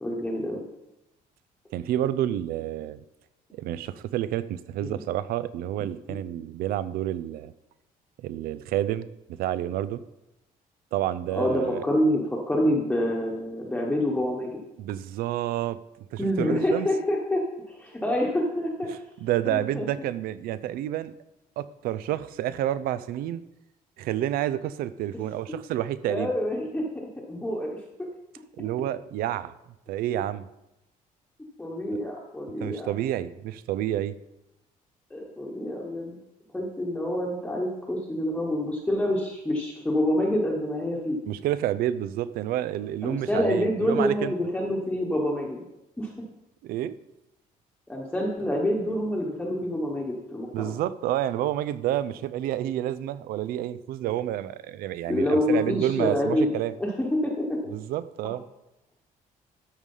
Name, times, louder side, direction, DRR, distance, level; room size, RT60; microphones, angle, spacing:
voice 1, 0.0-0.6 4.8-5.0 11.3-14.6 16.2-17.4 17.7-18.9 19.4-19.9 26.1-27.8 31.6-32.9 35.1-36.2 36.5-41.2 43.0-45.6 46.0-46.1 47.9-50.7 55.1-56.5 56.8-57.6, left 1 dB, 5° left, -3 dB, 1.1 m, -27 dB
voice 2, 1.7-3.0 3.5-7.5 8.2-10.0 10.9-11.8 14.8-15.8 16.1-16.9 18.9-21.1 21.6-23.4 24.0-26.3 28.6-29.5 29.9-30.5 32.6-34.2 41.3-44.3 46.6-47.0 50.5-56.7 57.7-58.4, right 12 dB, 85° right, 16 dB, 0.5 m, -29 dB
13.0 x 4.9 x 5.5 m, 0.90 s
cardioid pair, 170°, 15 cm